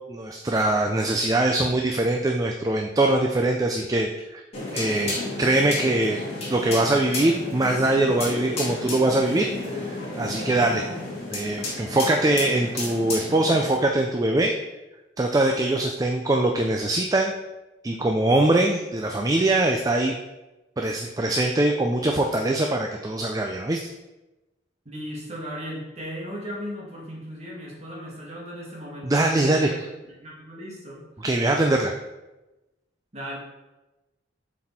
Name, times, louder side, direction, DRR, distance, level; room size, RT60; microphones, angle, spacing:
voice 1, 0.1-4.4 4.7-6.2 6.5-9.5 9.7-9.8 10.2-10.8 11.3-14.5 15.2-17.3 17.8-20.2 20.8-23.8 29.0-29.7 31.2-31.9, right 2 dB, 20° right, 2 dB, 0.4 m, -22 dB
sound 1, 4.5-13.7, left 2 dB, 35° left, 2.1 m, -32 dB
voice 2, 24.9-29.8 30.2-31.0 33.1-33.4, equal, 35° right, -3 dB, 1.9 m, -36 dB
7.5 x 4.2 x 4.3 m, 1.0 s
head